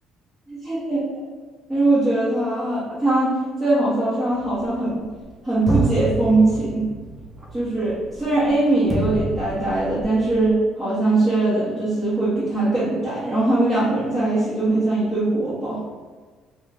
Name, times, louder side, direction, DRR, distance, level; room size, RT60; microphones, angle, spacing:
voice 1, 0.5-1.2 1.7-5.0 5.4-6.9 7.5-15.8, right 2 dB, ahead, -13 dB, 1.1 m, -21 dB
sound 1, 4.3-5.3 5.7-10.5, right 3 dB, 25° right, 0.5 m, -28 dB
2.9 x 2.3 x 3.4 m, 1.4 s
cardioid pair, 105°, 0 cm